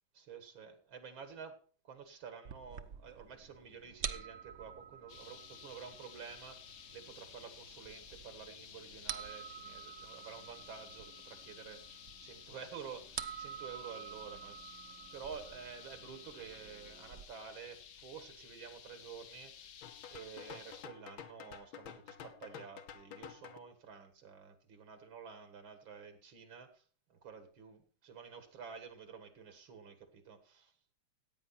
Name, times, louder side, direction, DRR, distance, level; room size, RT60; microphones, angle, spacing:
voice 1, 0.1-1.6 1.8-6.6 6.9-19.7 20.1-26.8 27.1-30.7, right 6 dB, 85° right, 8 dB, 2.4 m, -50 dB
sound 1, 2.4-17.2, right 8 dB, 55° right, 0.9 m, -49 dB
sound 2, 5.1-20.9, left 8 dB, 60° left, 0.8 m, -54 dB
sound 3, 19.8-23.6, left 8 dB, 85° left, 1.8 m, -50 dB
15.5 x 9.0 x 4.2 m, 0.41 s
omnidirectional pair, 2.1 m